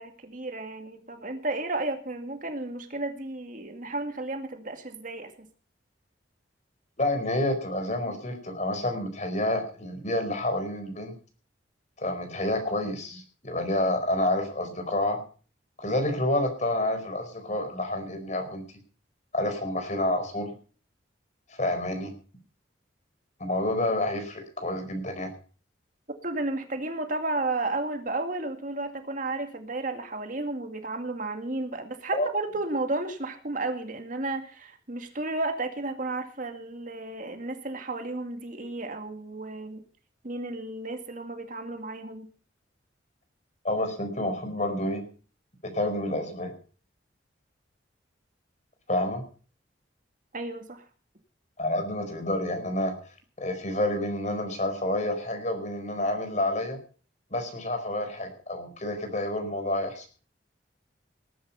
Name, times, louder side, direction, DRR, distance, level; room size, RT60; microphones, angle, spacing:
voice 1, 0.0-5.5 26.2-39.8 40.2-42.3 50.3-50.8, right 2 dB, 45° right, 6 dB, 2.1 m, -33 dB
voice 2, 7.0-11.1 12.0-15.2 15.8-18.6 19.3-20.5 21.5-22.1 23.4-25.3 32.1-32.3 43.6-45.0 45.6-46.5 48.9-49.2 51.6-52.9 53.4-56.8 57.3-60.1, left 1 dB, 40° left, 7 dB, 4.6 m, -29 dB
20.0 x 10.0 x 5.6 m, 0.40 s
head